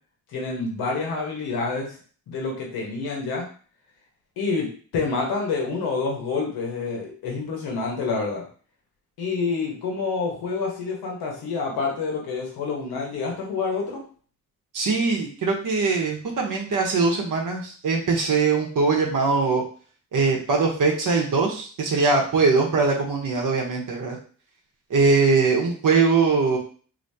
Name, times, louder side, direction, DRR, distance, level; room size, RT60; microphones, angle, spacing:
voice 1, 0.3-2.0 2.3-3.4 4.4-8.5 9.2-14.0, left 4 dB, 90° left, -1 dB, 1.1 m, -28 dB
voice 2, 14.7-19.6 20.1-24.2 24.9-26.6, right 4 dB, 60° right, -1 dB, 1.0 m, -21 dB
3.3 x 2.7 x 2.7 m, 0.42 s
cardioid pair, 60°, 36 cm